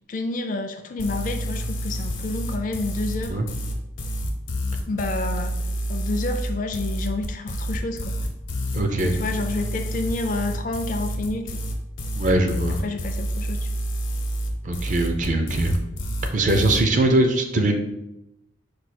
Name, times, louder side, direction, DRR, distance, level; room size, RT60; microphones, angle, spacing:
voice 1, 0.1-3.4 4.9-5.5 5.9-8.2 9.1-11.6 12.7-13.7, left 2 dB, 40° left, 6 dB, 0.4 m, -29 dB
sound 1, 1.0-16.8, equal, 75° left, 0.7 m, -28 dB
voice 2, 8.7-9.2 12.2-12.8 14.6-15.8 16.3-17.8, right 2 dB, 40° right, 5 dB, 0.5 m, -21 dB
4.7 x 2.3 x 4.2 m, 0.89 s
head